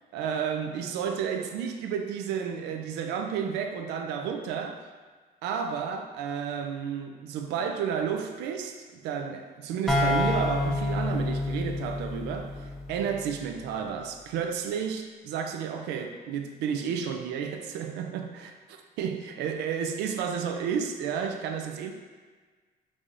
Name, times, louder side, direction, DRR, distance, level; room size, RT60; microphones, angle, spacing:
voice 1, 0.1-4.8 5.4-21.9, right 7 dB, 85° right, 5 dB, 0.4 m, -32 dB
sound 1, 9.9-13.5, left 1 dB, ahead, 0.7 m, -28 dB
5.3 x 3.3 x 2.5 m, 1.4 s
cardioid pair, 110°, 17 cm